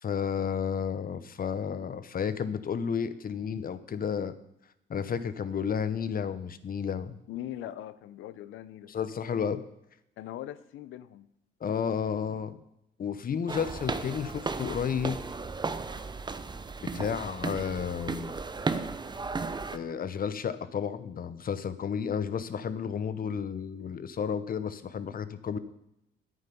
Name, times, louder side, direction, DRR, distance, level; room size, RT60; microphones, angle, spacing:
voice 1, 0.0-4.3 4.9-7.2 8.9-9.6 11.6-12.6 13.0-15.2 16.9-18.3 19.7-25.6, left 7 dB, 45° left, 14 dB, 0.9 m, -32 dB
voice 2, 7.3-8.9 10.2-11.3, left 12 dB, 85° left, 14 dB, 0.7 m, -41 dB
sound 1, 13.5-19.8, right 4 dB, 20° right, 0.8 m, -35 dB
10.0 x 9.1 x 5.4 m, 0.83 s
cardioid pair, 90°, 20 cm